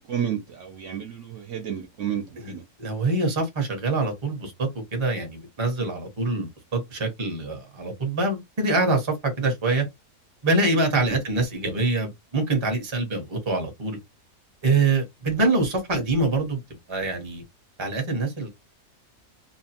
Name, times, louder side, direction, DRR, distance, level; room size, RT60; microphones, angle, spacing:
voice 1, 0.0-2.6, right 9 dB, 65° right, 0.8 m, -31 dB
voice 2, 2.4-9.8 10.4-14.0 14.6-16.6 16.9-17.4 17.8-18.5, right 3 dB, 25° right, 0.7 m, -25 dB
2.8 x 2.1 x 2.7 m
omnidirectional pair, 1.6 m